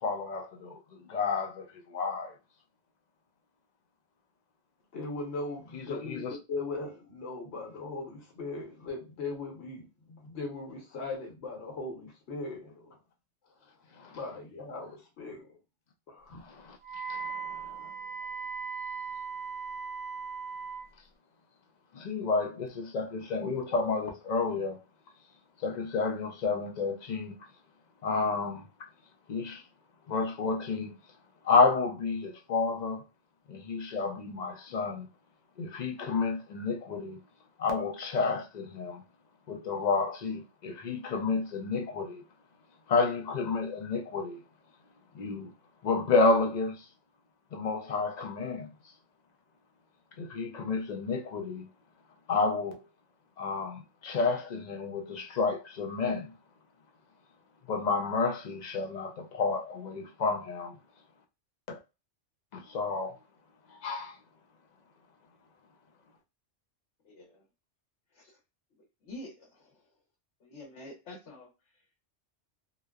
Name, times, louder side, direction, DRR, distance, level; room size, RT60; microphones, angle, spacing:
voice 1, 0.0-2.3 5.7-6.4 14.0-14.2 16.4-16.8 17.1-17.9 21.9-24.8 25.6-27.4 28.0-28.6 29.3-29.6 30.1-30.9 31.4-33.0 33.5-35.1 35.6-37.2 37.6-39.0 39.5-42.2 42.9-44.4 45.1-45.5 45.8-46.8 47.5-48.7 50.2-51.7 52.3-52.8 53.4-56.3 57.7-60.8 61.7-61.8 62.5-63.2 63.7-64.2, left 4 dB, 55° left, 0.5 m, -30 dB
voice 2, 4.9-13.0 14.1-15.6 16.1-16.4, left 3 dB, 70° left, 1.1 m, -39 dB
Wind instrument woodwind instrument, 16.8-20.9, right 5 dB, 15° right, 0.3 m, -38 dB
voice 3, 67.1-67.4 69.0-69.3 70.4-71.5, left 1 dB, 90° left, 1.1 m, -45 dB
2.9 x 2.0 x 2.3 m
omnidirectional pair, 1.2 m